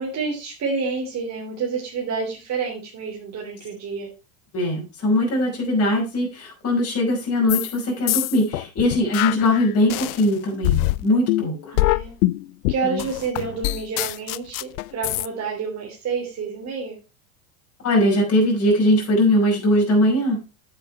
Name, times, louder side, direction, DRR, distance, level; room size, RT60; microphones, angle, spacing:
voice 1, 0.0-4.1 11.7-12.1 12.7-17.0, right 4 dB, 40° right, -1 dB, 3.1 m, -29 dB
voice 2, 4.5-11.7 12.8-13.0 17.8-20.4, left 1 dB, 35° left, -1 dB, 5.4 m, -20 dB
sound 1, 7.5-7.8 8.1-10.3 10.6-15.3, left 20 dB, 70° left, 0.6 m, -24 dB
8.8 x 8.5 x 4.3 m, 0.28 s
hypercardioid pair, 95°, 44 cm